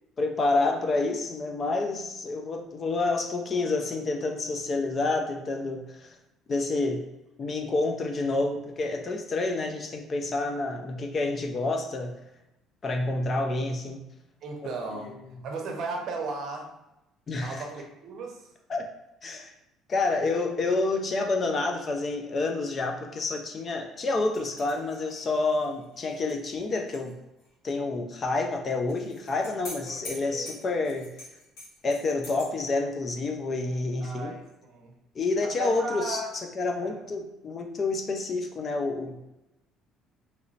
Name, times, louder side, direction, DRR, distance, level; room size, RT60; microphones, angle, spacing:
voice 1, 0.2-6.2 6.5-7.0 7.4-12.1 12.8-14.0 17.3-17.6 18.7-18.9 19.2-19.5 19.9-27.1 27.6-31.1 31.8-34.3 35.2-39.3, left 3 dB, 30° left, 3 dB, 0.3 m, -28 dB
voice 2, 14.4-15.1 15.4-16.8 17.4-18.5 29.9-30.6 34.0-35.0 35.4-36.3 36.7-37.1, right 3 dB, 55° right, 2 dB, 0.6 m, -36 dB
sound 1, 24.3-27.1 27.4-27.5 28.9-32.5, left 1 dB, 70° left, 1.3 m, -45 dB
3.0 x 2.9 x 2.6 m, 0.93 s
cardioid pair, 150°, 0 cm